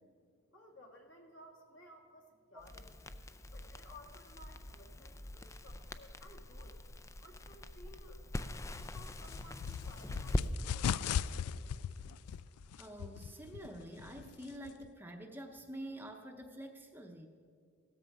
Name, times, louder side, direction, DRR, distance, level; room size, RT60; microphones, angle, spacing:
voice 1, 0.5-2.8 3.5-6.8 7.2-12.2, left 1 dB, 55° left, 2 dB, 2.1 m, -58 dB
Crackle, 2.6-10.5, left 1 dB, 15° left, 0.4 m, -43 dB
sound 1, 8.7-14.9, left 8 dB, 90° left, 0.3 m, -39 dB
voice 2, 12.8-17.3, right 1 dB, 10° right, 3 dB, 0.8 m, -47 dB
16.5 x 13.0 x 4.7 m, 2.3 s
head